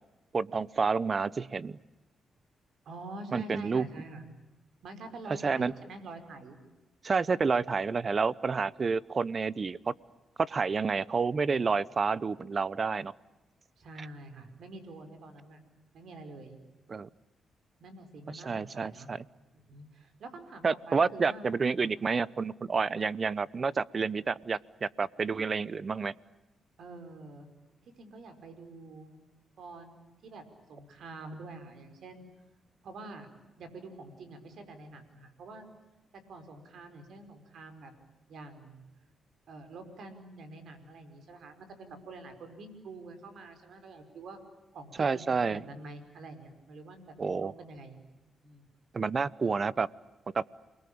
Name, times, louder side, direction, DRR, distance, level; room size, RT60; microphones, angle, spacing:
voice 1, 0.3-1.8 3.3-3.9 5.3-5.7 7.0-9.9 10.4-13.1 16.9-17.1 18.3-19.2 20.6-26.1 45.0-45.6 47.2-47.5 48.9-49.9 50.3-50.4, right 5 dB, 45° right, 20 dB, 0.9 m, -29 dB
voice 2, 2.9-4.3 4.8-6.6 7.3-7.4 13.8-15.6 15.9-16.6 17.8-19.1 19.7-21.5 21.8-21.9 26.8-27.5 27.8-29.2 29.6-32.2 32.8-33.3 33.6-35.6 36.1-37.9 38.3-38.9 39.5-44.4 44.7-48.0 48.4-48.7, right 2 dB, 70° right, 8 dB, 5.1 m, -47 dB
29.0 x 21.5 x 8.7 m, 1.1 s
cardioid pair, 70°, 0 cm